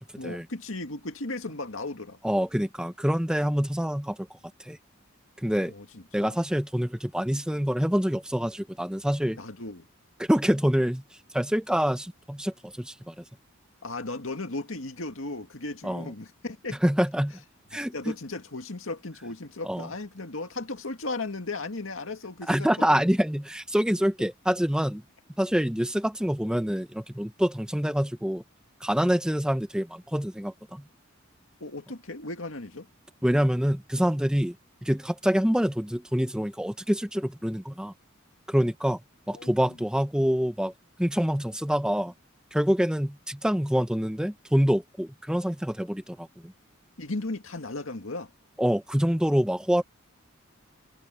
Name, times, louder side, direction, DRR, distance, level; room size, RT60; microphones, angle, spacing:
voice 1, 0.2-2.2 5.6-6.4 9.3-9.9 13.8-16.8 17.8-23.0 31.6-32.9 39.3-39.5 47.0-48.3, left 2 dB, 70° left, 2.2 m, -36 dB
voice 2, 2.2-4.8 5.4-5.7 6.1-9.4 10.2-11.0 11.3-13.2 15.8-16.1 16.8-17.4 17.7-18.1 19.6-19.9 22.5-25.0 25.4-28.4 28.8-30.8 33.2-34.5 34.8-37.9 38.5-39.0 39.3-40.7 41.0-42.1 42.5-46.5 48.6-49.8, equal, 5° right, 0.8 m, -26 dB
head